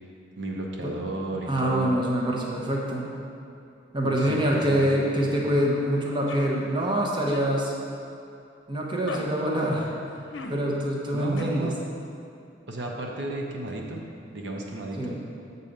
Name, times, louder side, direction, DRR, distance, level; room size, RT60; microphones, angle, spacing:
voice 1, 0.4-1.9 4.0-5.5 11.1-11.8 12.7-14.0 14.3-15.2, right 2 dB, 70° right, 0 dB, 0.8 m, -34 dB
voice 2, 1.5-3.1 3.9-7.7 8.7-9.9 10.5-11.7 15.0-15.2, right 1 dB, 25° right, -2 dB, 0.9 m, -25 dB
sound 1, 6.3-6.5 7.3-7.5 9.0-9.3 10.3-10.6 11.3-11.4, left 3 dB, 80° left, 0.6 m, -36 dB
7.3 x 4.1 x 6.5 m, 2.6 s
head